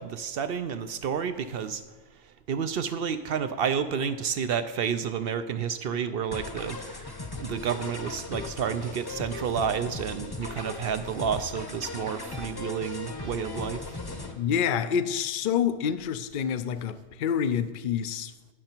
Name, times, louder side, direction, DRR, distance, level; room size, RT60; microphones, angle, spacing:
voice 1, 0.0-1.8 2.2-14.0, right 7 dB, 65° right, 0.6 m, -30 dB
sound 1, 6.3-14.3, left 3 dB, 20° left, 0.7 m, -38 dB
voice 2, 14.3-18.5, left 8 dB, 60° left, 0.5 m, -28 dB
15.0 x 6.6 x 4.5 m
omnidirectional pair, 1.4 m